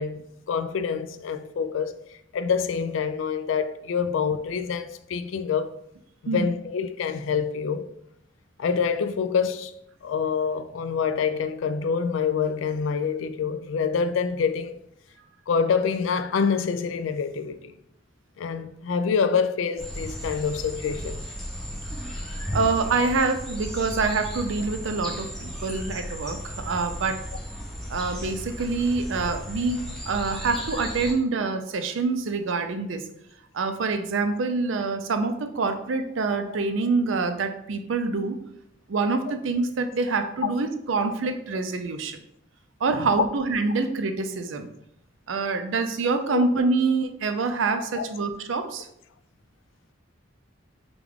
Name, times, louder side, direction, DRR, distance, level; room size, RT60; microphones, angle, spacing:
voice 1, 0.0-1.9 2.3-5.7 6.2-7.9 8.6-9.7 10.0-14.8 15.5-17.7 18.4-21.3 40.4-40.5 42.9-43.2 46.3-46.5 47.9-48.1, left 6 dB, 80° left, 0.4 m, -26 dB
sound 1, 19.8-31.1, equal, ahead, 0.7 m, -35 dB
voice 2, 22.5-27.2 27.9-33.1 33.5-38.4 38.9-42.2 42.8-44.7 45.3-48.9, right 3 dB, 80° right, 0.5 m, -26 dB
4.8 x 2.3 x 3.6 m
head